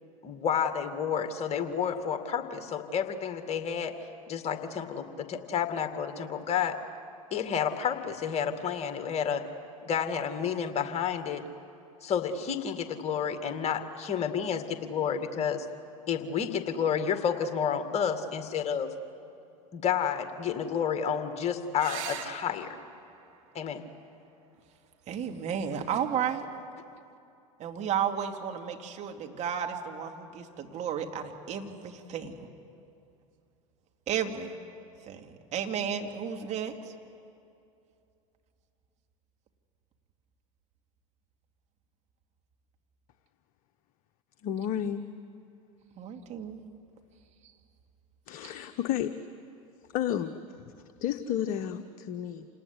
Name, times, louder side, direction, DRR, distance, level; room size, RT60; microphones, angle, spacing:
voice 1, 0.2-4.0 4.3-6.8 7.3-9.5 9.8-11.5 12.0-15.7 16.1-18.9 19.7-22.8 23.5-23.8, left 7 dB, 35° left, 7 dB, 2.2 m, -30 dB
sound 1, 21.8-26.8 28.7-29.3 32.8-32.9 33.2-33.3, right 9 dB, 65° right, 2.2 m, -46 dB
voice 2, 25.1-26.5 27.6-32.5 34.1-34.6 35.1-36.9 46.0-46.6 48.4-48.5, right 8 dB, 40° right, 4 dB, 2.5 m, -33 dB
voice 3, 44.4-45.1 48.3-49.1 49.9-52.5, left 10 dB, 50° left, 8 dB, 1.0 m, -32 dB
27.5 x 19.0 x 9.8 m, 2.6 s
hypercardioid pair, 80°, 18 cm